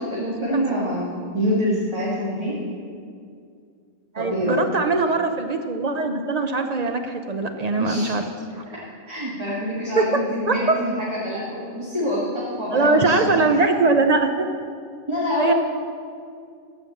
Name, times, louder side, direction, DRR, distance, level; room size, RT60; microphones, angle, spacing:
voice 1, 0.0-2.6 4.2-4.6 7.8-8.1 9.1-13.6 15.1-15.5, equal, 20° right, -7 dB, 1.8 m, -26 dB
voice 2, 4.1-8.2 8.6-8.7 10.0-10.8 12.7-14.5 15.4-15.5, right 3 dB, 55° right, 6 dB, 0.4 m, -21 dB
14.0 x 5.2 x 7.2 m, 2.3 s
omnidirectional pair, 1.4 m